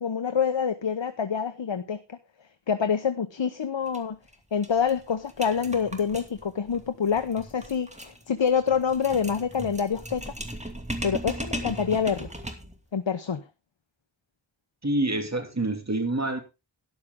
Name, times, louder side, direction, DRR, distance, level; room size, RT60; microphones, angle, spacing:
voice 1, 0.0-2.2 2.7-4.2 4.5-10.3 11.0-12.3 12.9-13.4, left 6 dB, 85° left, 1.0 m, -26 dB
sound 1, 3.9-4.0 4.3-4.4 4.6-12.8, right 1 dB, 15° right, 2.5 m, -37 dB
voice 2, 14.8-16.4, right 2 dB, 35° right, 2.9 m, -27 dB
12.5 x 11.0 x 3.7 m
wide cardioid pair, 55°, 44 cm